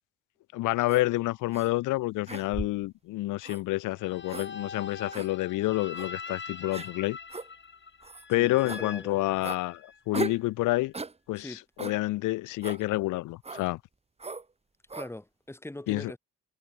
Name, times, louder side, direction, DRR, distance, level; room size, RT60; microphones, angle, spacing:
voice 1, 0.5-7.2 8.3-10.9 11.3-13.8 15.9-16.1, left 19 dB, 90° left, 0.7 m, -28 dB
sound 1, 0.9-1.1 1.5-1.7 2.3-2.9 3.4-3.6 4.3-4.5 5.1-5.3 6.0-6.1 6.7-6.9 7.3-7.5 8.0-8.2 8.7-8.8 9.4-9.6 10.1-10.4 10.9-11.2 11.8-12.0 12.6-12.8 13.4-13.7 14.2-14.4 14.9-15.1, right 3 dB, 20° right, 1.8 m, -37 dB
sound 2, 4.0-10.0, left 5 dB, 40° left, 6.6 m, -43 dB
voice 2, 8.4-9.2 11.3-11.6 14.9-16.2, left 1 dB, 10° left, 3.5 m, -42 dB
cardioid pair, 90°, 30 cm